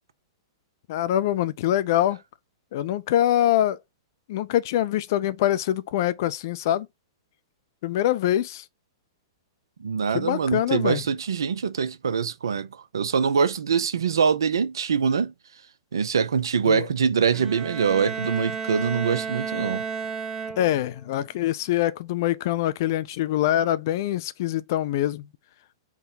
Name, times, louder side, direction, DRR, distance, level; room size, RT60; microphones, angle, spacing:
voice 1, 0.9-2.2 2.7-3.8 4.3-6.9 7.8-8.6 10.1-11.0 16.7-16.9 20.6-25.3, left 12 dB, 55° left, 0.4 m, -24 dB
voice 2, 9.8-15.3 15.9-19.8, right 6 dB, 75° right, 0.4 m, -24 dB
Bowed string instrument, 17.3-21.0, right 5 dB, 20° right, 0.5 m, -32 dB
3.6 x 2.1 x 3.9 m
figure-of-eight pair, 110°, 2 cm